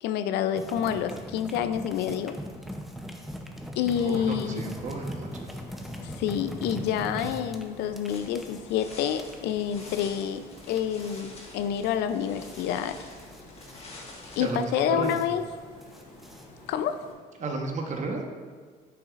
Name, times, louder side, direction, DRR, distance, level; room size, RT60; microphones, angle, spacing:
voice 1, 0.0-2.4 3.8-4.6 6.0-10.4 10.7-13.0 14.4-15.4 16.7-17.0, left 9 dB, 85° left, 10 dB, 0.5 m, -28 dB
sound 1, 0.6-16.9, equal, ahead, 0.7 m, -41 dB
sound 2, 3.8-17.1, left 2 dB, 50° left, 2.2 m, -50 dB
voice 2, 4.0-5.6 14.4-15.3 17.4-18.3, right 3 dB, 45° right, 2 dB, 1.1 m, -33 dB
sound 3, 8.1-14.5, left 2 dB, 35° left, 1.7 m, -48 dB
9.1 x 6.9 x 2.5 m, 1.5 s
cardioid pair, 110°, 17 cm